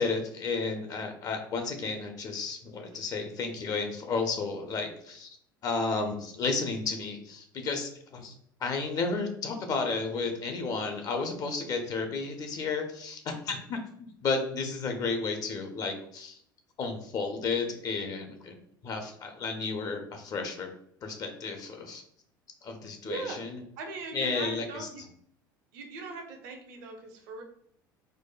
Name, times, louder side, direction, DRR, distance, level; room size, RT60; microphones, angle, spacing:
voice 1, 0.0-5.3 5.6-8.4 8.6-16.4 16.8-18.6 18.8-20.7 21.0-22.0 22.6-23.6 24.1-24.9, left 4 dB, 35° left, 5 dB, 0.5 m, -32 dB
voice 2, 23.0-23.5 23.8-25.0 25.7-27.4, right 3 dB, 55° right, 3 dB, 0.7 m, -40 dB
4.6 x 2.1 x 2.2 m, 0.67 s
figure-of-eight pair, 70°, 11 cm